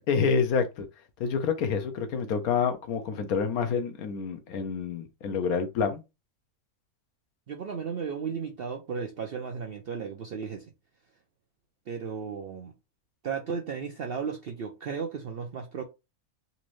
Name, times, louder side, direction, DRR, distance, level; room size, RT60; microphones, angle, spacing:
voice 1, 0.1-0.9 1.2-6.0, left 6 dB, 75° left, 1.2 m, -28 dB
voice 2, 7.5-10.7 11.9-12.7 13.2-15.8, right 6 dB, 65° right, 0.6 m, -34 dB
4.1 x 2.5 x 3.1 m
omnidirectional pair, 1.5 m